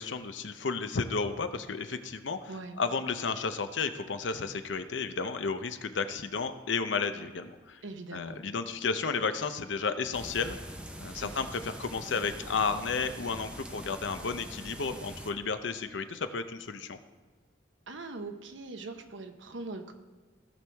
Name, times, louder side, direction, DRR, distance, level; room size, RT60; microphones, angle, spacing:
voice 1, 0.0-2.5 2.8-7.8 8.1-10.6 11.0-17.0, left 5 dB, 75° left, 10 dB, 0.7 m, -32 dB
voice 2, 7.8-8.4 11.1-11.5 17.9-19.9, right 3 dB, 85° right, 6 dB, 0.9 m, -41 dB
sound 1, 10.1-15.3, equal, 5° right, 0.7 m, -44 dB
16.5 x 6.3 x 3.4 m, 1.4 s
head